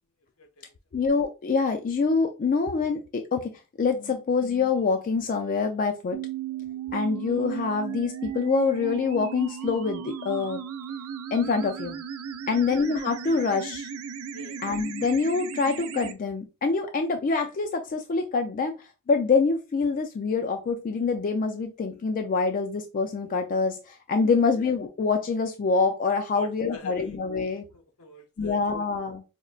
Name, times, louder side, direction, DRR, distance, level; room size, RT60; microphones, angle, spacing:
voice 1, 0.4-0.8 12.5-12.7 14.3-14.6 26.3-27.2 27.5-28.7 29.0-29.1, left 2 dB, 75° left, 0.7 m, -45 dB
voice 2, 0.9-3.5 3.8-6.2 6.9-10.6 11.3-12.0 12.5-13.9 14.6-27.6 28.4-29.2, left 4 dB, 40° left, 0.3 m, -25 dB
sound 1, 6.1-16.1, right 8 dB, 75° right, 0.4 m, -36 dB
5.0 x 2.1 x 2.4 m
head